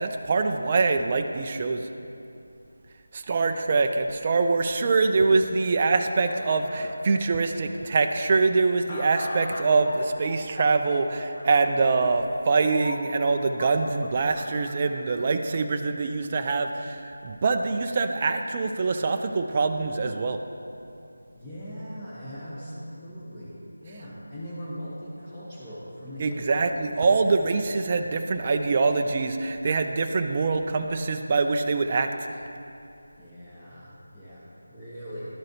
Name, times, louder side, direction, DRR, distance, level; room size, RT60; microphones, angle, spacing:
voice 1, 0.0-1.9 3.1-20.4 26.2-32.1, right 4 dB, 30° right, 5 dB, 0.3 m, -24 dB
sound 1, 6.0-15.1, left 2 dB, 40° left, 0.7 m, -41 dB
voice 2, 21.3-26.7 27.1-27.2 33.2-35.3, equal, 15° left, -13 dB, 1.3 m, -40 dB
12.0 x 4.7 x 3.0 m, 2.7 s
figure-of-eight pair, 165°, 0 cm